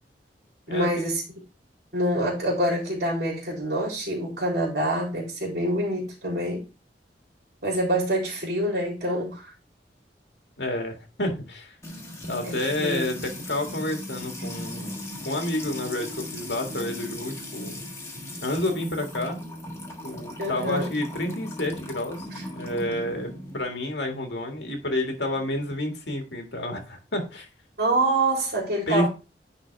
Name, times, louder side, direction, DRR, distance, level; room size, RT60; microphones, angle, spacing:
voice 1, 0.7-1.2 1.9-6.6 7.6-9.5 12.4-13.1 20.4-20.9 22.3-22.4 27.8-29.1, right 1 dB, 65° right, 3.4 m, -26 dB
voice 2, 10.6-11.8 12.2-14.9 15.2-17.8 18.4-19.4 20.0-22.3 22.5-27.5 28.9-29.1, left 1 dB, 85° left, 2.0 m, -29 dB
Music / Water tap faucet / Trickle dribble, 11.8-23.6, left 1 dB, 15° left, 1.5 m, -37 dB
10.0 x 4.1 x 3.4 m
head